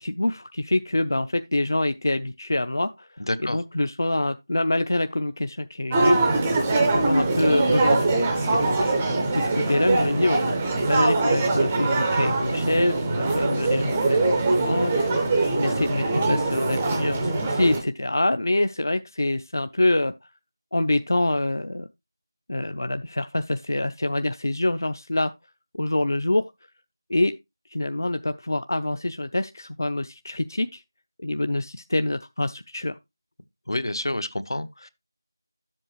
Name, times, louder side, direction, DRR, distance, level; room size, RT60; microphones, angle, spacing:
voice 1, 0.0-6.2 6.6-8.2 8.5-9.0 9.3-10.4 10.9-14.3 14.6-15.1 15.5-20.1 20.7-21.9 22.5-25.3 25.8-26.5 27.1-27.3 27.7-30.8 31.2-33.0, left 1 dB, 50° left, 0.5 m, -25 dB
voice 2, 3.2-3.6 33.7-34.9, left 1 dB, 75° left, 1.1 m, -28 dB
sound 1, 5.9-17.8, right 2 dB, 5° right, 0.5 m, -23 dB
11.0 x 7.7 x 3.0 m
figure-of-eight pair, 180°, 2 cm